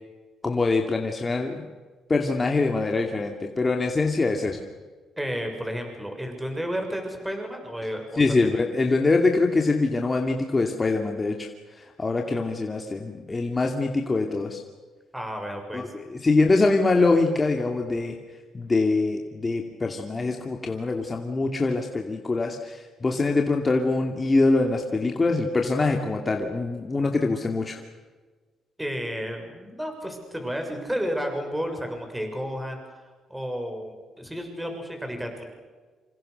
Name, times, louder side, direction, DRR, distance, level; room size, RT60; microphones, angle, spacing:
voice 1, 0.4-1.6 2.1-4.6 8.2-11.5 11.8-14.6 15.7-18.2 18.5-27.8, left 3 dB, 25° left, 2 dB, 2.6 m, -24 dB
voice 2, 5.2-8.2 15.1-15.9 28.8-32.8 33.3-35.5, equal, 5° right, 4 dB, 6.8 m, -32 dB
27.0 x 27.0 x 6.7 m, 1.4 s
cardioid pair, 90°, 0 cm